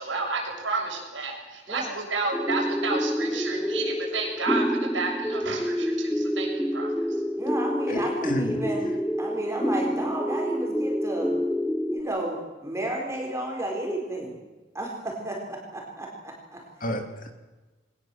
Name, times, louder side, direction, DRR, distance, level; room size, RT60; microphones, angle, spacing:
voice 1, 0.0-4.7 4.9-6.9, right 3 dB, 90° right, 0 dB, 7.3 m, -31 dB
sound 1, 2.3-12.0, equal, 5° left, 0.8 m, -28 dB
voice 2, 7.4-8.9 9.2-11.3 11.9-14.4 14.7-16.6, right 1 dB, 15° right, -1 dB, 4.4 m, -32 dB
voice 3, 7.9-8.6 16.8-17.3, equal, 45° left, 6 dB, 2.9 m, -31 dB
23.0 x 19.0 x 7.8 m, 1.2 s
head